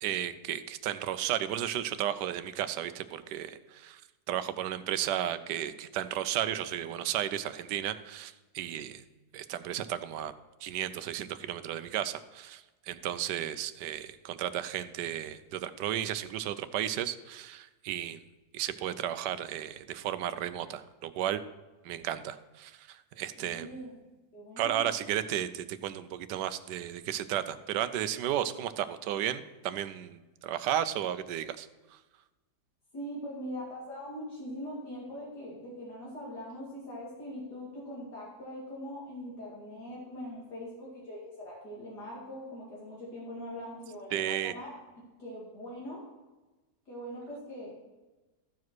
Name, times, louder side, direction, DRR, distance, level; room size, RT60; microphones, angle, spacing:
voice 1, 0.0-4.0 4.3-9.0 9.3-10.3 10.6-18.2 18.5-21.4 21.8-23.7 24.6-31.7 44.1-44.5, right 11 dB, 85° right, 13 dB, 1.2 m, -34 dB
voice 2, 23.4-24.0 24.3-24.9 32.9-46.0 46.9-47.8, equal, 75° left, -6 dB, 2.9 m, -42 dB
14.0 x 4.9 x 6.0 m, 1.1 s
omnidirectional pair, 1.8 m